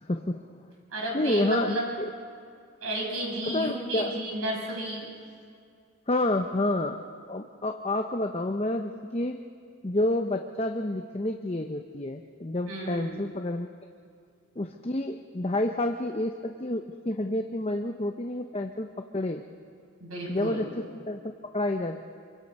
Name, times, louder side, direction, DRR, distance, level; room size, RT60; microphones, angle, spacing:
voice 1, 0.0-0.5 1.1-2.1 3.4-4.2 6.1-7.0 7.3-9.4 9.8-13.7 14.6-18.9 19.1-19.4 20.3-22.0, left 1 dB, 25° left, 5 dB, 0.7 m, -29 dB
voice 2, 0.9-1.9 2.8-5.1 12.7-13.2 20.0-20.6, right 1 dB, 90° right, -2 dB, 6.5 m, -32 dB
27.0 x 24.0 x 5.4 m, 2.2 s
head